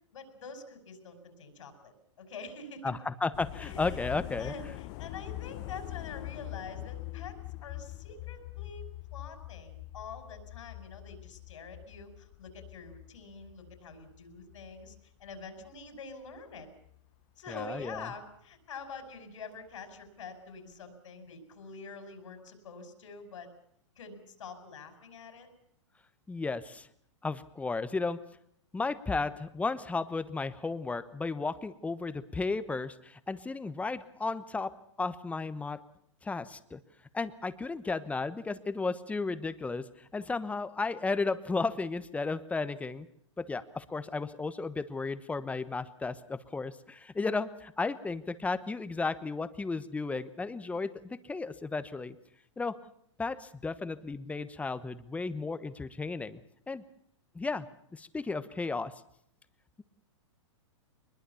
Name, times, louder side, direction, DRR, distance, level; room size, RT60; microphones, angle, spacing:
voice 1, 0.1-2.9 3.6-7.4 7.6-16.7 17.4-23.5 24.0-25.5, left 4 dB, 80° left, 7 dB, 5.2 m, -46 dB
voice 2, 2.8-4.5 17.5-18.1 26.3-26.9 27.2-28.2 28.7-34.7 35.0-35.8 36.2-36.8 37.1-39.8 40.1-43.1 43.4-52.1 52.6-52.7 53.2-56.4 56.7-56.8 57.3-57.7 57.9-58.9, left 3 dB, 10° left, 13 dB, 1.1 m, -34 dB
sound 1, 3.3-15.9 16.3-17.1 17.7-17.9, left 18 dB, 45° left, 0.9 m, -44 dB
22.5 x 21.0 x 7.1 m, 0.69 s
hypercardioid pair, 125°, 16 cm